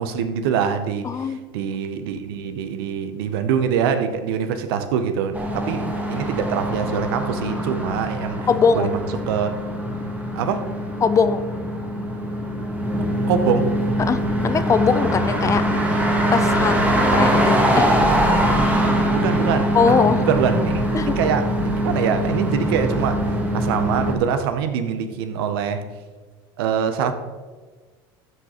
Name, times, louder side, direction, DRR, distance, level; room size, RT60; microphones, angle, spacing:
voice 1, 0.0-8.5 8.7-9.5 10.4-10.6 13.3-13.7 18.8-25.8 26.6-27.1, right 7 dB, 80° right, 9 dB, 0.6 m, -24 dB
voice 2, 1.0-1.4 8.5-8.9 11.0-11.4 14.1-15.6 15.9-16.0 16.3-17.9 19.7-20.3 20.9-21.1, left 5 dB, 25° left, 12 dB, 0.4 m, -21 dB
sound 1, 5.3-24.2, equal, 10° right, 1.2 m, -22 dB
11.0 x 4.1 x 2.9 m, 1.4 s
supercardioid pair, 95°, 12 cm